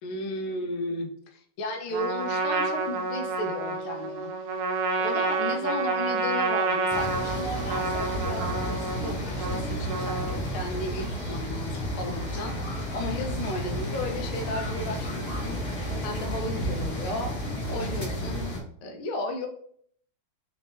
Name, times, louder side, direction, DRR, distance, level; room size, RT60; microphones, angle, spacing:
voice 1, 0.0-4.3 5.0-12.6 12.9-15.6 16.0-17.4 17.7-19.5, left 1 dB, 85° left, 5 dB, 1.5 m, -34 dB
Trumpet, 1.9-10.6, right 3 dB, 85° right, 1.5 m, -29 dB
sound 1, 6.9-18.6, equal, 65° left, 0.4 m, -32 dB
4.3 x 2.7 x 3.2 m, 0.62 s
omnidirectional pair, 2.3 m